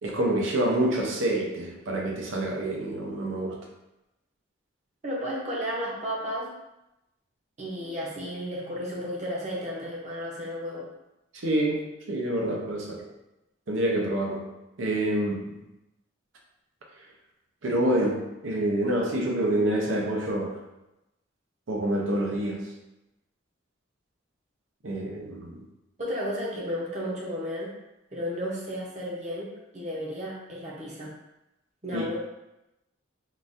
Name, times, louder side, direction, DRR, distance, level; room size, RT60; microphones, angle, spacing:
voice 1, 0.0-3.6 11.3-13.1 13.7-14.4 14.8-15.6 17.6-20.6 21.7-22.6 24.8-25.6 31.9-32.1, right 1 dB, 80° right, 0 dB, 0.6 m, -27 dB
voice 2, 5.0-6.6 7.6-10.9 26.0-27.7 28.1-31.1 31.8-32.1, equal, 35° right, -4 dB, 0.7 m, -33 dB
3.8 x 2.5 x 2.5 m, 0.93 s
head